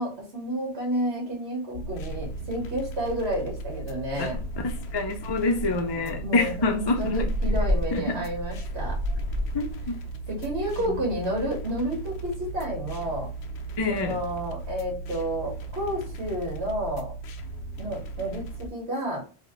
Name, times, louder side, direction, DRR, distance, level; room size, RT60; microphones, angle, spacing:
voice 1, 0.0-4.4 5.7-9.0 10.3-13.3 13.9-17.1 17.8-19.2, equal, 85° right, 1.6 m, -30 dB
sound 1, 1.7-18.7, right 3 dB, 80° left, 0.9 m, -37 dB
sound 2, 4.5-5.0 5.5-9.7, equal, 40° right, 0.8 m, -30 dB
voice 2, 4.6-7.3 7.9-8.2 9.5-10.0 10.9-11.0 13.8-14.2, left 3 dB, 35° left, 0.4 m, -27 dB
4.0 x 2.2 x 3.5 m
omnidirectional pair, 1.1 m